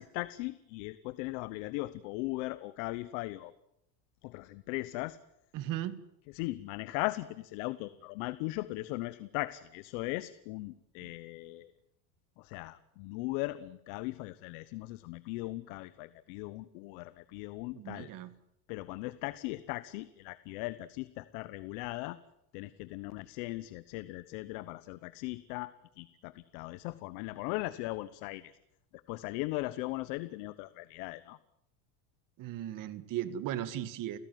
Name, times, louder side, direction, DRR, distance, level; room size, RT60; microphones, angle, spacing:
voice 1, 0.0-3.5 4.2-5.2 6.3-11.7 12.4-18.1 18.7-22.2 22.5-28.5 29.1-31.4, left 20 dB, 65° left, 15 dB, 1.1 m, -38 dB
voice 2, 5.5-6.0 11.0-11.1 17.7-18.3 32.4-34.2, right 12 dB, 45° right, 13 dB, 2.0 m, -37 dB
30.0 x 17.0 x 9.3 m, 0.82 s
cardioid pair, 155°, 46 cm